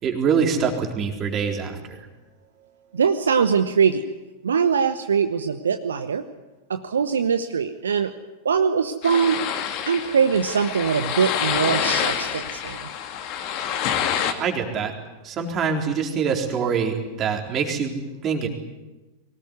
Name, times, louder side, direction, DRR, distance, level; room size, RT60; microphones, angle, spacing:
voice 1, 0.0-2.0 14.4-14.9 15.2-18.0 18.2-18.5, right 6 dB, 30° right, 3 dB, 3.9 m, -24 dB
voice 2, 2.9-4.0 4.4-6.2 6.7-8.1 8.4-9.4 9.9-12.8, right 6 dB, 70° right, 8 dB, 1.1 m, -22 dB
sound 1, 9.0-14.3, left 9 dB, 40° left, 2.4 m, -27 dB
23.5 x 18.5 x 9.6 m, 1.1 s
figure-of-eight pair, 90°, 0 cm